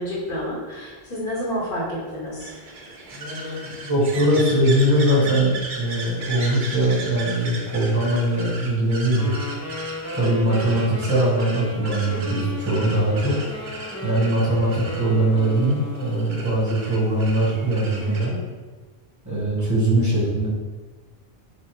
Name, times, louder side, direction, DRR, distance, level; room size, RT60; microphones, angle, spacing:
voice 1, 0.0-2.5 12.1-12.6 18.0-18.5, equal, 60° left, -6 dB, 1.4 m, -30 dB
sound 1, 2.4-18.3, right 2 dB, 55° right, 0.8 m, -37 dB
voice 2, 3.1-9.3 10.1-13.3 14.0-18.3 19.2-20.5, right 1 dB, 15° right, -8 dB, 1.3 m, -21 dB
Wind instrument woodwind instrument, 9.2-16.6, left 2 dB, 20° left, 0.5 m, -34 dB
4.7 x 2.3 x 4.4 m, 1.3 s
omnidirectional pair, 1.1 m